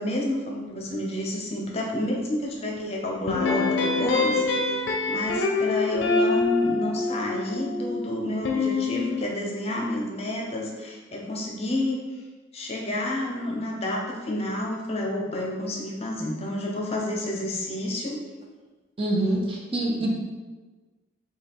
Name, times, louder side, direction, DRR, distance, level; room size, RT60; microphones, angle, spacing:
voice 1, 0.0-4.8 5.1-12.0 12.5-18.2 19.2-19.4 19.9-20.1, left 1 dB, 35° left, -1 dB, 0.7 m, -30 dB
sound 1, 3.3-9.2, left 3 dB, 80° left, 0.5 m, -25 dB
voice 2, 19.0-20.1, right 1 dB, 30° right, -2 dB, 0.6 m, -25 dB
6.3 x 2.3 x 3.5 m, 1.3 s
head